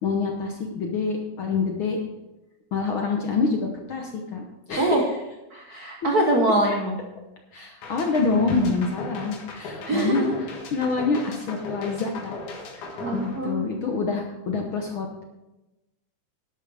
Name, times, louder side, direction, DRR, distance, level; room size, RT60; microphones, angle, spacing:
voice 1, 0.0-2.0 2.7-5.0 7.5-10.3 10.7-12.3 12.8-15.2, left 4 dB, 65° left, 1 dB, 1.3 m, -26 dB
voice 2, 5.5-7.0 9.8-10.3 13.0-13.7, right 1 dB, 65° right, 0 dB, 0.9 m, -23 dB
sound 1, 7.8-14.0, left 2 dB, 85° left, 3.2 m, -37 dB
11.5 x 11.5 x 3.4 m, 1.0 s
omnidirectional pair, 3.5 m